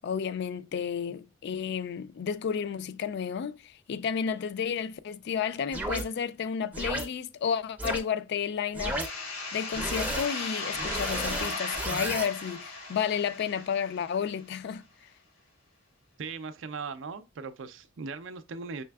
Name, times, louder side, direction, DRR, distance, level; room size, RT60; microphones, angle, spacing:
voice 1, 0.0-9.0 9.5-14.8, left 7 dB, 55° left, 0.3 m, -32 dB
sound 1, 5.7-6.0 6.7-7.0 7.8-8.0 8.7-9.1 9.7-10.3 10.7-12.3, right 1 dB, 5° right, 0.5 m, -33 dB
sound 2, 8.9-14.4, left 3 dB, 90° left, 1.3 m, -37 dB
voice 2, 16.2-18.8, right 4 dB, 65° right, 0.4 m, -39 dB
5.6 x 3.3 x 2.3 m
head